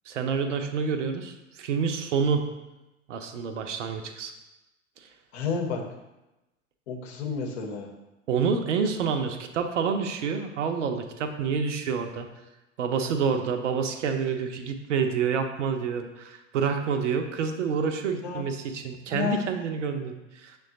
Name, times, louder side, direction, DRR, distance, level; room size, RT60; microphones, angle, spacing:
voice 1, 0.1-2.4 3.1-4.3 8.3-12.3 12.8-20.6, right 6 dB, 70° right, 6 dB, 0.6 m, -28 dB
voice 2, 5.3-5.8 6.9-7.9 18.2-18.4 19.1-19.5, left 5 dB, 55° left, 1 dB, 0.9 m, -30 dB
6.1 x 2.3 x 3.7 m, 1.0 s
figure-of-eight pair, 90°, 38 cm